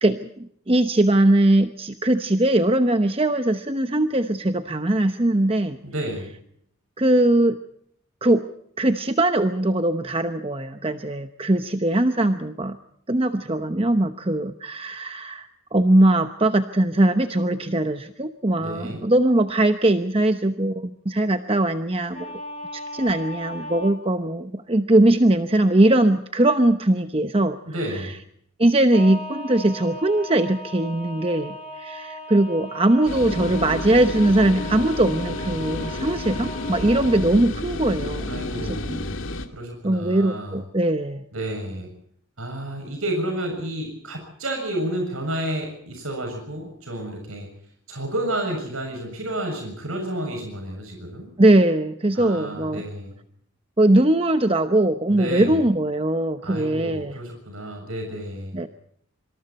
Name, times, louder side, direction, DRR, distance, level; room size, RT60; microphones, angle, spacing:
voice 1, 0.0-5.8 7.0-7.6 8.2-8.4 8.8-12.8 13.1-22.4 22.7-27.6 27.9-28.1 28.6-38.3 38.6-39.0 39.8-41.2 51.4-52.8 53.8-57.2 58.5-58.7, right 1 dB, 25° right, 8 dB, 0.9 m, -21 dB
voice 2, 5.8-6.3 18.6-19.0 27.7-28.1 38.3-39.2 39.5-40.6 41.3-41.9 42.4-47.5 47.9-51.3 52.2-53.1 55.1-55.6 56.4-58.6, right 1 dB, 90° right, 3 dB, 6.9 m, -31 dB
sound 1, 22.1-24.0 28.9-37.2, equal, 30° left, 3.6 m, -37 dB
sound 2, 33.0-39.5, left 2 dB, 70° left, 2.4 m, -31 dB
26.5 x 26.0 x 4.3 m, 0.68 s
head